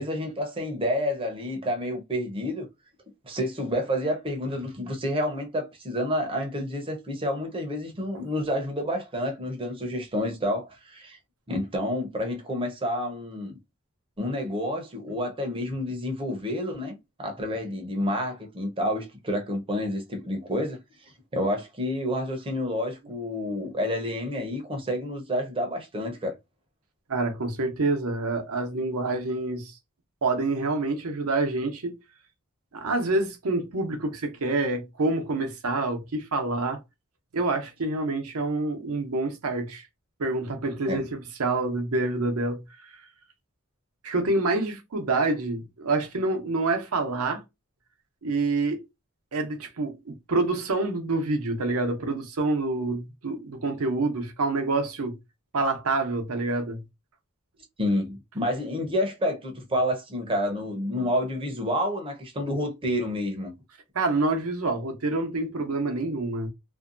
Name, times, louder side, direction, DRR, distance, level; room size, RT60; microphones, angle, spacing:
voice 1, 0.0-2.7 3.2-11.2 11.5-13.5 14.2-20.8 21.3-26.4 40.9-41.0 57.8-63.5, equal, 25° right, 0.6 m, -29 dB
voice 2, 27.1-29.7 30.2-32.0 32.7-36.8 37.3-39.9 40.2-42.9 44.0-47.4 48.2-48.8 49.3-55.2 55.5-56.8 63.9-66.5, right 2 dB, 80° right, 0.7 m, -27 dB
2.6 x 2.2 x 2.5 m
head